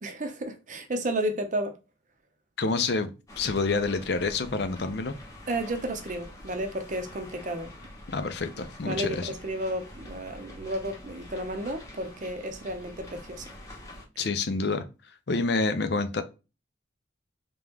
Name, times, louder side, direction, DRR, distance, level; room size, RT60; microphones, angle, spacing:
voice 1, 0.0-1.7 5.5-7.7 8.9-13.5, right 1 dB, 40° right, 0.6 m, -32 dB
voice 2, 2.6-3.1 3.4-5.1 8.1-9.3 14.2-14.8 15.3-16.2, left 3 dB, 60° left, 0.5 m, -27 dB
sound 1, 3.3-14.1, left 1 dB, 15° left, 0.9 m, -46 dB
3.4 x 2.9 x 3.4 m
head